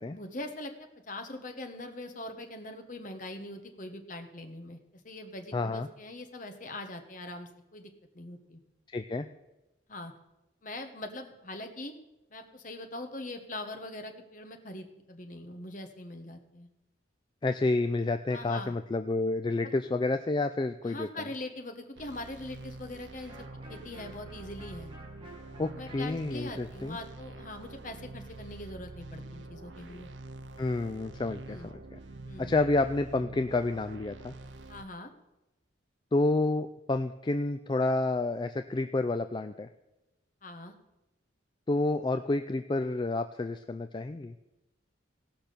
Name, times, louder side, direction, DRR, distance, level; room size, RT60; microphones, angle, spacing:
voice 1, 0.0-4.8 5.0-8.6 9.9-10.1 10.6-11.9 12.3-16.7 18.3-18.7 19.5-19.7 20.8-24.9 25.7-30.1 31.5-31.7 32.2-32.5 34.7-35.1 40.4-40.7, left 2 dB, 45° left, 6 dB, 1.2 m, -42 dB
voice 2, 5.5-5.9 8.9-9.3 17.4-21.1 25.6-27.0 30.6-32.0 32.4-34.3 36.1-39.7 41.7-44.3, left 2 dB, 25° left, 8 dB, 0.3 m, -29 dB
sound 1, 22.0-34.9, right 2 dB, 75° right, 0.7 m, -46 dB
Electric guitar, 23.3-28.9, right 1 dB, 25° right, 2.1 m, -53 dB
16.5 x 5.9 x 6.7 m, 0.96 s
head